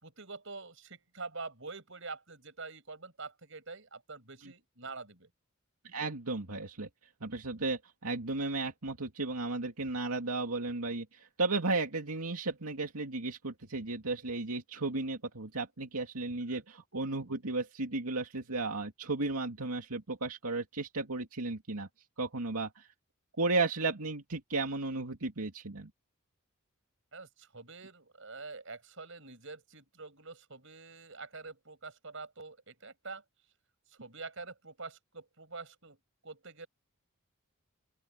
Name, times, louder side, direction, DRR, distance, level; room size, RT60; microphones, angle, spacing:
voice 1, 0.0-5.3 16.5-16.6 27.1-33.2 34.0-36.0 36.2-36.7, right 3 dB, 60° right, 6.6 m, -46 dB
voice 2, 5.8-6.9 7.2-21.9 22.2-22.9 23.4-25.9, right 3 dB, 90° right, 2.5 m, -34 dB
open air
head